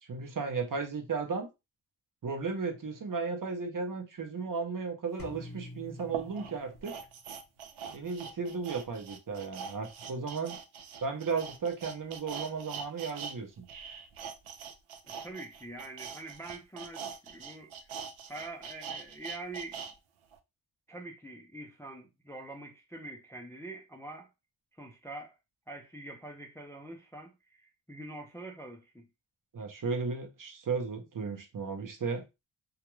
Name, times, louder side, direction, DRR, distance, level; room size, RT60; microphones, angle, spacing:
voice 1, 0.1-1.5 2.2-7.0 7.9-10.6 11.0-13.7 29.5-32.2, right 5 dB, 40° right, 0.6 m, -35 dB
sound 1, 5.2-7.2, left 2 dB, 45° left, 0.8 m, -47 dB
sound 2, 5.2-5.3 6.0-13.4 13.6-19.9 20.3-20.4, right 6 dB, 85° right, 0.5 m, -43 dB
voice 2, 15.2-17.7 18.3-19.9 20.9-24.3 24.8-25.3 25.7-29.1, right 2 dB, 5° left, 0.4 m, -45 dB
2.3 x 2.2 x 3.0 m
wide cardioid pair, 100°, 48 cm